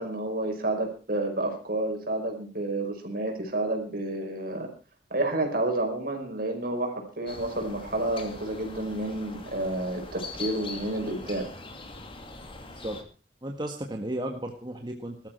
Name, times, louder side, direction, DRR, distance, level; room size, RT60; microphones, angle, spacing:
voice 1, 0.0-4.7 5.1-11.5, right 2 dB, 55° right, 3 dB, 5.4 m, -30 dB
sound 1, 7.3-13.0, left 3 dB, 30° left, 2.4 m, -42 dB
voice 2, 13.4-15.3, right 1 dB, 25° right, 3 dB, 1.6 m, -34 dB
18.5 x 13.5 x 4.6 m, 0.35 s
head